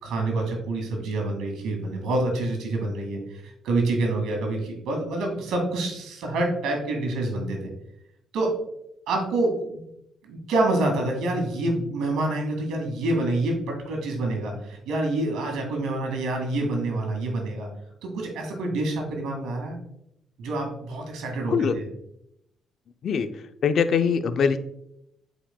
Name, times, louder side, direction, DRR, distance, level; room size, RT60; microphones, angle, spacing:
voice 1, 0.0-7.7 8.3-8.5 9.1-9.8 10.2-17.7 18.0-19.8 20.4-21.9, right 2 dB, 85° right, 1 dB, 2.0 m, -27 dB
voice 2, 23.6-24.6, left 6 dB, 60° left, 10 dB, 0.5 m, -22 dB
8.7 x 5.1 x 2.2 m, 0.79 s
cardioid pair, 90°, 0 cm